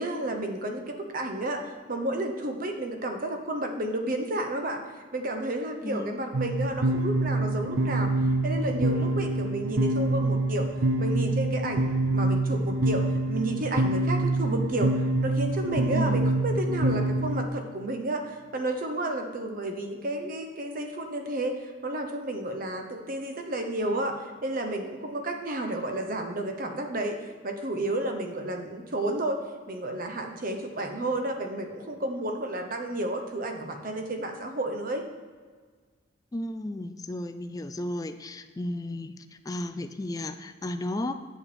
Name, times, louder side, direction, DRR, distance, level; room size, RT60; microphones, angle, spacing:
voice 1, 0.0-4.8 5.1-8.1 8.4-10.7 11.0-24.2 24.4-27.2 27.4-29.4 29.7-35.0, right 1 dB, 45° right, 5 dB, 0.9 m, -31 dB
voice 2, 5.8-6.1 15.9-16.2 36.3-39.2 39.5-41.1, left 1 dB, 20° left, 9 dB, 0.3 m, -33 dB
sound 1, 6.3-17.5, right 2 dB, 70° right, 0.5 m, -26 dB
8.1 x 7.2 x 4.2 m, 1.5 s
head